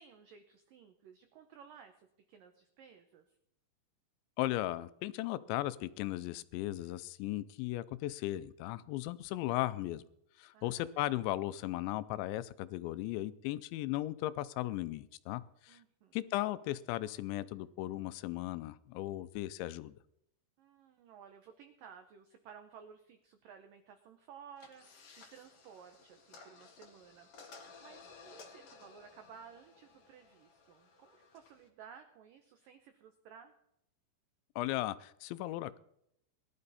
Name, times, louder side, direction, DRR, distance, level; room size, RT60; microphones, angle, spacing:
voice 1, 0.0-3.4 10.5-11.2 15.7-16.2 20.6-24.8 25.2-27.5 27.8-33.5, right 7 dB, 85° right, 7 dB, 1.9 m, -56 dB
voice 2, 4.4-10.0 10.4-15.8 16.1-19.9 34.6-35.8, left 16 dB, 80° left, 16 dB, 2.8 m, -36 dB
sound 1, 24.6-31.7, left 4 dB, 55° left, 1.6 m, -57 dB
19.5 x 12.0 x 4.2 m, 0.75 s
omnidirectional pair, 5.4 m